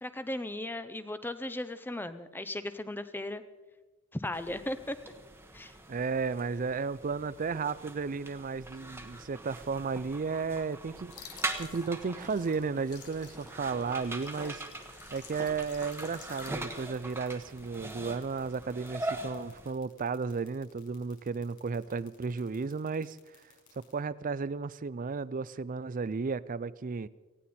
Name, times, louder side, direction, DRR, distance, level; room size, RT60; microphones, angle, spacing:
voice 1, 0.0-3.4 4.1-5.0 5.5-5.7, left 1 dB, 10° left, 11 dB, 0.7 m, -36 dB
sound 1, 4.3-19.7, right 2 dB, 10° right, 1.1 m, -42 dB
voice 2, 5.9-14.6 15.1-23.2 23.8-27.1, right 4 dB, 35° right, 18 dB, 0.4 m, -34 dB
sound 2, 11.1-16.5, left 9 dB, 85° left, 1.5 m, -53 dB
sound 3, 16.0-23.9, left 8 dB, 45° left, 5.6 m, -61 dB
19.0 x 15.5 x 4.3 m, 1.2 s
head